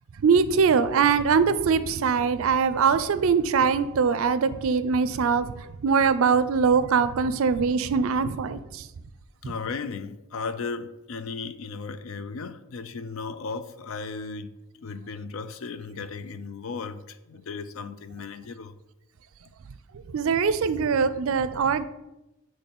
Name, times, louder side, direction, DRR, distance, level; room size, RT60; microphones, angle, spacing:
voice 1, 0.2-5.5 5.8-8.8 20.1-21.8, right 5 dB, 65° right, 0.4 m, -22 dB
voice 2, 9.4-14.5 14.8-18.8, left 4 dB, 65° left, 0.4 m, -35 dB
8.1 x 3.2 x 4.2 m
head